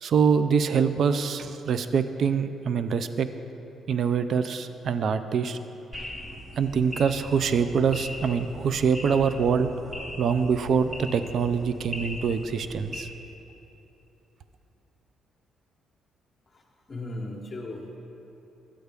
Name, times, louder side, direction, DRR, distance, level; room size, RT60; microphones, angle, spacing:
voice 1, 0.0-3.3 3.9-5.6 6.6-9.7 10.2-13.1, right 6 dB, 60° right, 11 dB, 0.4 m, -24 dB
sound 1, 5.9-13.0, left 1 dB, 15° right, 1.1 m, -39 dB
voice 2, 16.9-18.0, left 2 dB, 35° left, -3 dB, 1.0 m, -36 dB
12.5 x 8.1 x 3.4 m, 3.0 s
cardioid pair, 90°, 0 cm